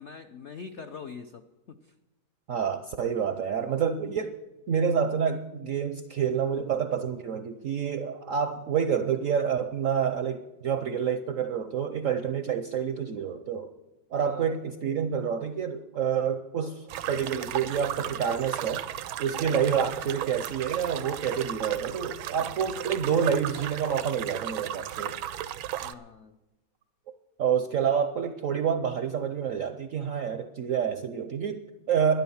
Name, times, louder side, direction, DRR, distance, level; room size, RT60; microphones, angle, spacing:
voice 1, 0.0-1.9 3.7-3.8 14.2-14.5 19.3-19.6 25.8-26.4, left 5 dB, 70° left, 7 dB, 0.6 m, -44 dB
voice 2, 2.5-4.4 4.7-13.7 14.1-18.9 19.2-25.2 27.4-32.2, right 7 dB, 65° right, 9 dB, 0.8 m, -28 dB
sound 1, 16.9-25.9, right 11 dB, 85° right, 1.5 m, -35 dB
12.0 x 10.5 x 7.1 m, 1.0 s
omnidirectional pair, 2.1 m